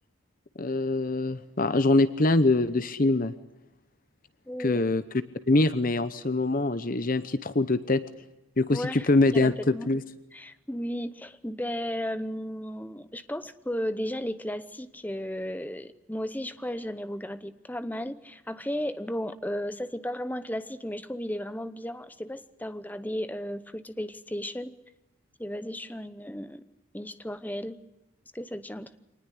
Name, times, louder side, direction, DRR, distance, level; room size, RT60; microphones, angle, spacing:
voice 1, 0.6-3.3 4.6-5.0 5.5-8.0 8.6-10.0, left 2 dB, 40° left, 13 dB, 0.8 m, -24 dB
voice 2, 4.5-4.8 8.7-9.9 10.3-24.7 25.4-26.6 26.9-27.8 28.3-29.0, equal, 10° left, 12 dB, 0.8 m, -34 dB
24.5 x 19.5 x 9.9 m, 0.97 s
head